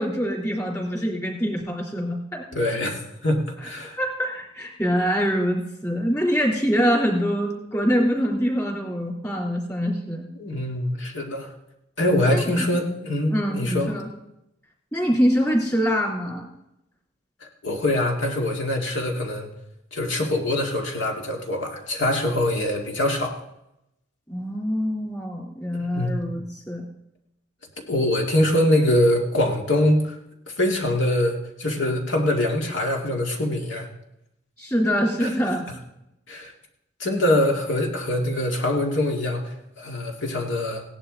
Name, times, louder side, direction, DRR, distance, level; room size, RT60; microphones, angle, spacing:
voice 1, 0.0-2.5 4.0-10.3 12.3-12.4 13.3-14.1 14.9-16.4 24.3-26.8 34.6-35.6, equal, 15° left, -2 dB, 3.3 m, -24 dB
voice 2, 2.5-4.0 10.4-11.5 12.0-13.9 17.4-19.5 19.9-23.3 25.8-26.2 27.9-30.2 30.6-33.9 35.2-35.3 36.3-36.5 37.0-40.8, left 1 dB, 65° left, 1 dB, 2.2 m, -23 dB
17.0 x 11.0 x 4.0 m, 0.85 s
head